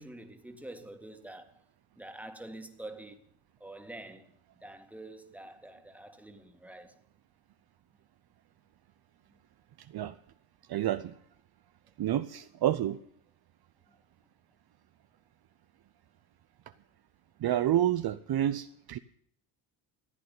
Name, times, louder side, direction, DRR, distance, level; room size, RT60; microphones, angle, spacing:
voice 1, 0.0-1.6 2.0-3.2 3.6-7.0 13.9-14.0, right 1 dB, 5° right, 2.0 m, -47 dB
voice 2, 10.7-11.1 12.0-13.0 17.4-19.0, right 12 dB, 50° right, 0.8 m, -29 dB
15.0 x 9.4 x 9.5 m
supercardioid pair, 80°, 48 cm